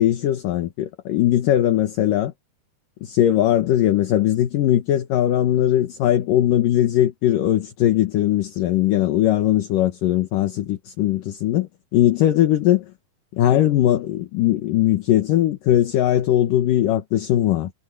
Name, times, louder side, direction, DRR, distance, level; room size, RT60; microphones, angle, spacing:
voice 1, 0.0-2.3 3.0-12.9 13.3-17.7, left 12 dB, 65° left, 2.7 m, -19 dB
omnidirectional pair, 4.5 m